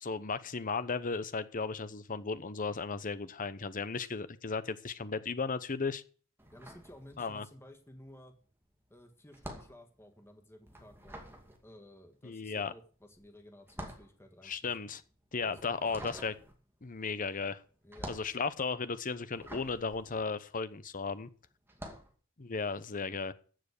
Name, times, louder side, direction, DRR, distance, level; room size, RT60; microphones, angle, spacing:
voice 1, 0.0-6.0 7.2-7.5 12.2-12.7 14.4-15.0 15.3-16.4 16.8-17.6 18.1-21.3 22.4-23.3, left 4 dB, 40° left, 0.9 m, -35 dB
sound 1, 6.4-7.6 7.9-21.1 21.6-22.1, right 1 dB, 10° right, 2.3 m, -48 dB
voice 2, 6.5-8.4 8.9-11.2 11.6-14.8 15.5-15.7 17.8-18.1 21.9-22.0, left 1 dB, 10° left, 1.7 m, -55 dB
14.0 x 7.5 x 6.6 m
head